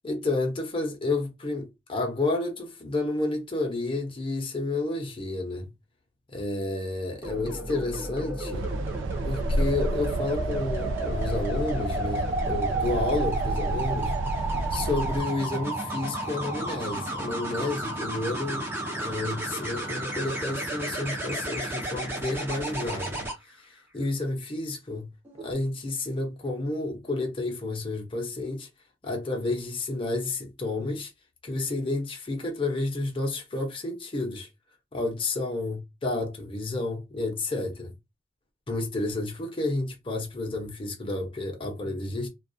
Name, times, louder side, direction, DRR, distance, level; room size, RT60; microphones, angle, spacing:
voice 1, 0.0-5.7 6.3-8.7 9.2-14.2 14.7-18.7 19.0-25.1 25.4-28.7 29.0-31.1 31.4-34.5 34.9-37.9 38.7-42.3, left 2 dB, 30° left, 0.8 m, -30 dB
sound 1, 7.2-23.3 25.2-25.5, right 2 dB, 10° right, 0.6 m, -32 dB
sound 2, 8.5-15.2, right 1 dB, 80° right, 0.3 m, -31 dB
2.3 x 2.3 x 2.6 m
head